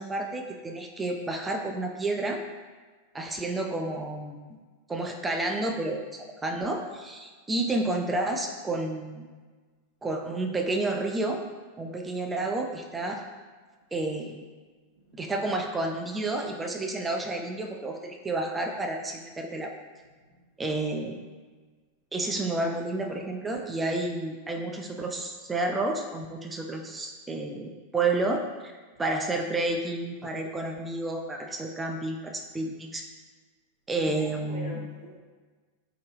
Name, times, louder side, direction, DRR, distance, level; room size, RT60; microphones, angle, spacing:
voice 1, 0.0-2.4 3.1-4.6 4.9-9.3 10.0-11.4 11.8-13.2 13.9-14.4 15.1-19.7 20.6-21.2 22.1-28.7 29.0-33.0 33.9-34.9, right 2 dB, 15° right, 2 dB, 0.3 m, -30 dB
voice 2, 34.0-35.1, equal, 55° right, -9 dB, 0.6 m, -43 dB
2.7 x 2.1 x 3.3 m, 1.4 s
figure-of-eight pair, 90°, 0 cm